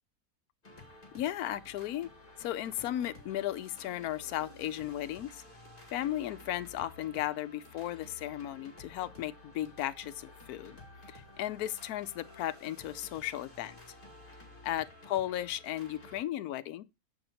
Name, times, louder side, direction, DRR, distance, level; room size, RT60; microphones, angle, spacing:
sound 1, 0.6-16.2, left 2 dB, 35° left, 2.2 m, -53 dB
voice 1, 1.1-2.1 2.4-5.4 5.9-10.8 11.1-13.9 14.6-16.8, left 13 dB, 85° left, 1.1 m, -35 dB
7.0 x 6.0 x 3.9 m
omnidirectional pair, 1.6 m